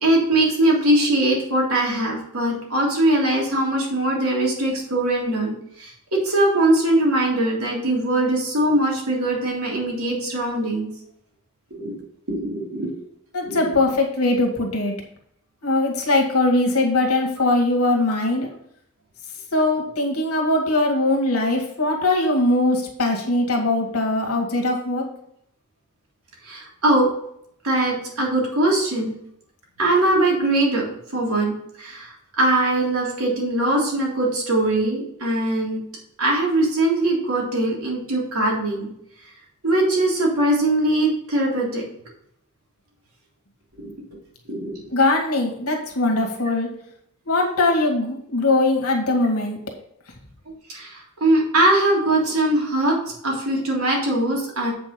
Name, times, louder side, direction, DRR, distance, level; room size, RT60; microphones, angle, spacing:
voice 1, 0.0-10.9 11.7-11.9 12.3-12.9 13.4-13.7 26.4-27.1 27.6-29.1 29.8-30.9 31.1-31.5 31.8-35.8 36.2-38.9 39.6-41.8 43.8-43.9 44.5-44.8 50.7-53.0 53.2-54.7, right 1 dB, 75° right, -3 dB, 3.3 m, -21 dB
voice 2, 13.3-14.9 15.6-18.5 19.5-25.1 44.9-46.7 47.3-49.6, left 2 dB, 80° left, 0 dB, 2.0 m, -21 dB
8.2 x 5.4 x 5.2 m, 0.71 s
head